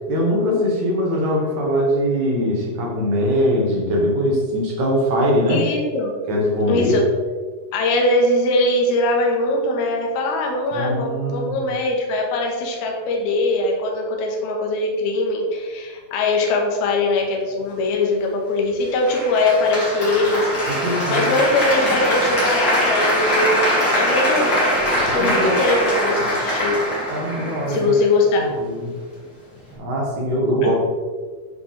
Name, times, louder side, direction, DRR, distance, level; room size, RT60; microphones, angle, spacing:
voice 1, 0.1-5.6 6.3-7.0 10.7-11.6 20.7-21.3 25.0-25.6 27.1-27.9 28.4-28.9 29.8-30.7, equal, 55° right, -3 dB, 2.5 m, -21 dB
voice 2, 5.5-6.1 6.7-7.0 7.7-20.5 21.1-24.5 25.1-26.8 27.7-28.5 30.6-30.7, left 2 dB, 75° left, 0 dB, 3.1 m, -21 dB
Applause, 19.1-28.1, equal, 30° left, 2.6 m, -22 dB
11.5 x 5.1 x 3.4 m, 1.5 s
omnidirectional pair, 4.7 m